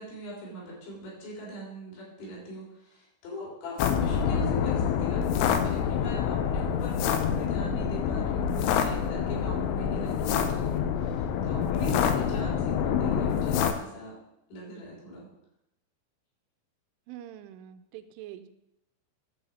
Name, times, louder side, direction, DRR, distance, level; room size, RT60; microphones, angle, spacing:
voice 1, 0.0-14.2 14.5-15.3, right 1 dB, 70° left, -4 dB, 6.3 m, -41 dB
sound 1, 3.8-13.7, left 8 dB, 90° left, 3.3 m, -27 dB
voice 2, 17.1-18.5, right 12 dB, 85° right, 10 dB, 3.2 m, -44 dB
11.5 x 4.9 x 7.9 m, 0.83 s
omnidirectional pair, 5.6 m